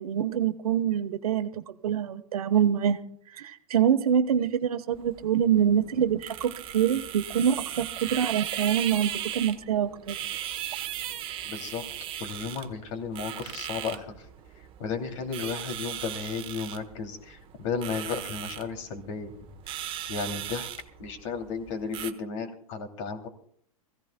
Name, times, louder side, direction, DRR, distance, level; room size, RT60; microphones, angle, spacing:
voice 1, 0.0-3.0 3.3-10.2, right 9 dB, 80° right, 10 dB, 1.1 m, -25 dB
sound 1, 4.9-22.1, right 11 dB, 30° right, 1.0 m, -37 dB
voice 2, 11.5-11.8 12.2-14.1 14.8-19.3 20.1-20.7 21.0-23.3, left 5 dB, 60° left, 5 dB, 2.7 m, -34 dB
24.0 x 16.0 x 2.2 m, 0.63 s
hypercardioid pair, 130°, 19 cm